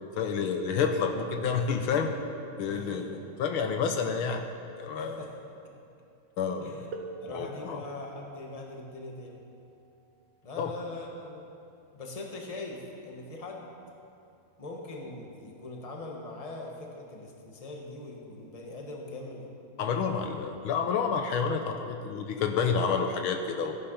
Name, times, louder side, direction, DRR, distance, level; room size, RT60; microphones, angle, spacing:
voice 1, 0.2-2.1 2.6-3.1 3.4-4.4 4.8-5.2 6.4-6.8 7.3-7.8 10.6-10.7 19.8-23.8, left 6 dB, 80° left, 5 dB, 1.6 m, -29 dB
voice 2, 2.7-3.2 5.0-5.3 6.6-6.9 7.2-9.3 10.4-11.4 11.9-13.6 14.6-19.5, left 2 dB, 20° left, 0 dB, 1.4 m, -41 dB
sound 1, 6.9-12.4 13.4-13.5 14.3-14.5, right 4 dB, 70° right, 1.6 m, -48 dB
15.0 x 10.0 x 5.7 m, 2.6 s
omnidirectional pair, 2.3 m